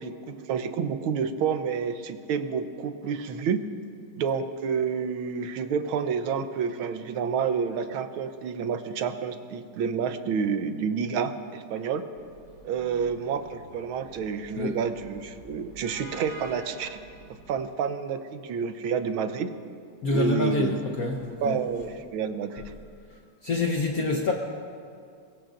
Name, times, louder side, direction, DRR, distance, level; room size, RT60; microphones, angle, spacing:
voice 1, 0.0-3.6 4.2-12.0 12.6-17.0 17.5-19.5 20.1-20.7 21.4-22.7, right 6 dB, 90° right, 9 dB, 1.7 m, -29 dB
sound 1, 12.1-17.6, right 1 dB, 55° right, 5.7 m, -48 dB
voice 2, 20.0-21.8 23.1-24.3, left 3 dB, 55° left, 1 dB, 1.3 m, -27 dB
23.0 x 21.0 x 2.5 m, 2.3 s
omnidirectional pair, 2.2 m